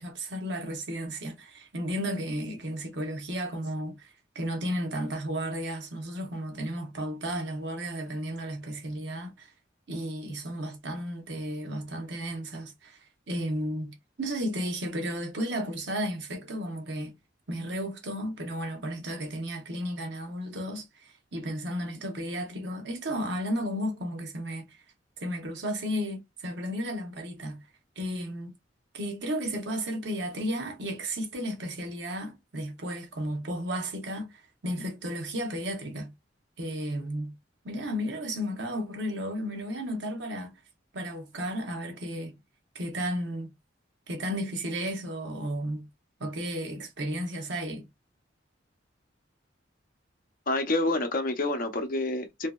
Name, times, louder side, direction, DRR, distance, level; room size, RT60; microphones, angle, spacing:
voice 1, 0.0-9.5 9.9-13.0 13.3-17.1 17.5-24.7 25.2-27.6 28.0-28.5 28.9-36.1 36.6-37.3 37.6-40.5 40.9-42.4 42.7-43.5 44.1-45.9 46.2-47.9, equal, 60° right, 0.8 m, -33 dB
voice 2, 50.5-52.5, left 2 dB, 45° left, 0.6 m, -28 dB
2.8 x 2.7 x 2.2 m
head